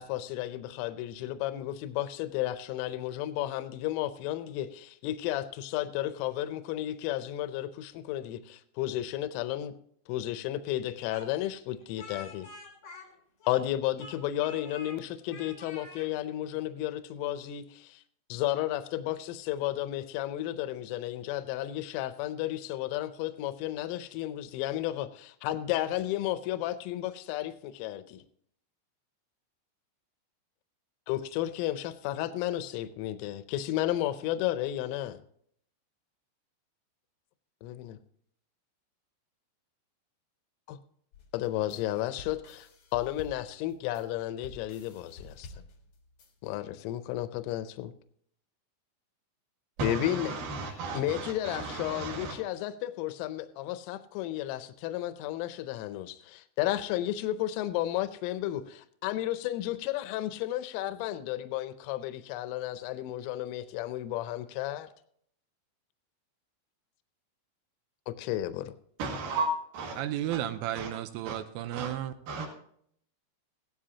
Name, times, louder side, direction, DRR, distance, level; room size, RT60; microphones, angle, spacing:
voice 1, 0.0-9.7 10.1-12.5 13.5-18.0 18.3-28.2 31.1-35.2 37.6-38.0 40.7-40.8 41.3-45.5 46.4-47.9 49.8-50.4 50.9-64.9 68.1-68.7, left 13 dB, 85° left, 3.2 m, -33 dB
Speech, 11.1-13.7 14.0-15.0 15.3-16.1, left 4 dB, 45° left, 1.8 m, -47 dB
sound 1, 41.1-46.5, left 3 dB, 60° left, 1.5 m, -50 dB
voice 2, 49.8-52.4 69.0-70.0 70.3-70.4 70.7-70.9 71.2-71.4 71.7-71.9 72.3-72.5, right 2 dB, 55° right, 2.9 m, -34 dB
voice 3, 70.0-72.1, right 12 dB, 85° right, 3.3 m, -33 dB
16.0 x 12.5 x 2.8 m
omnidirectional pair, 5.8 m